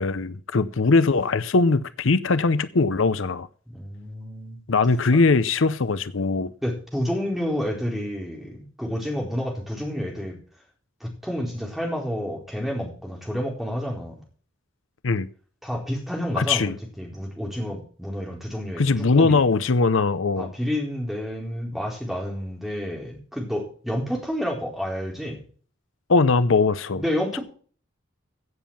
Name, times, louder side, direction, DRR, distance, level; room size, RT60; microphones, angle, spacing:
voice 1, 0.0-3.5 4.7-6.5 15.0-15.3 16.4-16.8 18.8-20.5 26.1-27.0, left 3 dB, 75° left, 0.7 m, -20 dB
voice 2, 3.7-4.6 6.6-10.4 11.0-14.2 15.6-19.4 20.4-25.4 27.0-27.4, equal, ahead, 4.2 m, -29 dB
16.0 x 7.2 x 5.8 m
head